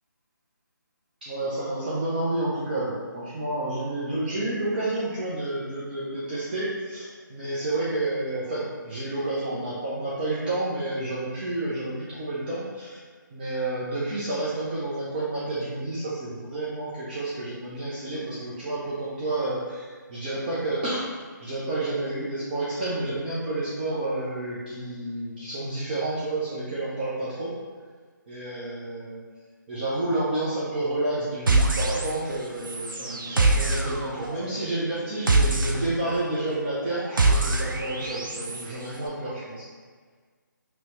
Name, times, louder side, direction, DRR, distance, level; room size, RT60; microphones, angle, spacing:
voice 1, 1.2-13.0 13.3-27.5 28.3-29.2 29.7-39.6, right 2 dB, 30° right, -10 dB, 0.6 m, -30 dB
sound 1, 31.5-32.4 32.6-38.7, right 2 dB, 90° right, 0.5 m, -25 dB
2.9 x 2.8 x 3.2 m, 1.5 s
figure-of-eight pair, 155°, 11 cm